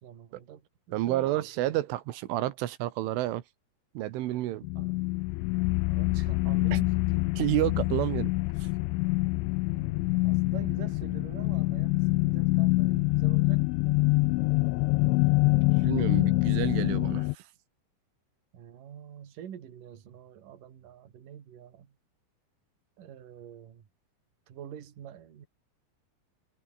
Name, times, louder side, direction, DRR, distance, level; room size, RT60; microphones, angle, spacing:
voice 1, 0.0-1.3 4.8-5.1 5.9-7.3 9.7-14.1 15.7-16.4 18.5-22.0 23.0-23.9 24.5-25.5, right 9 dB, 50° right, 3.7 m, -47 dB
voice 2, 0.9-3.4 4.0-4.7 6.7-6.8 7.4-8.3 8.6-8.7 15.8-17.4, right 15 dB, 90° right, 3.9 m, -30 dB
sound 1, 4.6-17.4, left 23 dB, 85° left, 2.9 m, -26 dB
omnidirectional pair, 5.5 m